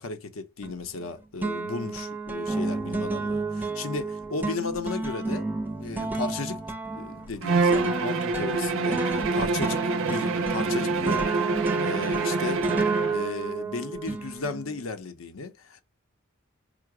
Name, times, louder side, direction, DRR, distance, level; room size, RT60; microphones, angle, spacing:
voice 1, 0.0-5.5 5.8-6.6 6.9-11.3 11.8-12.6 13.1-15.8, left 3 dB, 70° left, 0.7 m, -35 dB
sound 1, 0.6-1.1 1.4-14.8, right 3 dB, 10° right, 0.4 m, -31 dB
Bowed string instrument, 7.4-13.2, right 4 dB, 70° right, 0.4 m, -26 dB
4.7 x 2.0 x 4.7 m
head